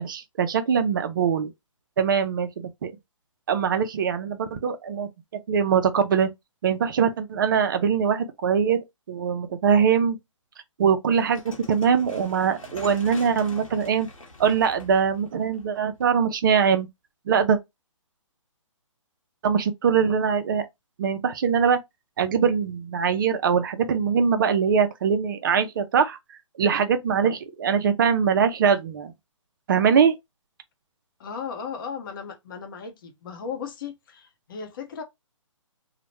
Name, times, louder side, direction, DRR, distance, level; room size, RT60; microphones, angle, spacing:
voice 1, 0.0-1.5 2.0-2.9 3.5-5.1 5.5-6.3 6.6-10.2 10.8-14.1 14.4-16.9 17.3-17.6 19.4-20.7 21.0-21.8 22.2-26.2 26.6-29.1 29.7-30.1, right 7 dB, 40° right, 0.4 m, -22 dB
sound 1, 11.2-16.3, left 2 dB, 90° left, 1.1 m, -45 dB
voice 2, 31.2-35.0, left 6 dB, 40° left, 0.7 m, -36 dB
2.8 x 2.1 x 3.0 m
hypercardioid pair, 140°, 17 cm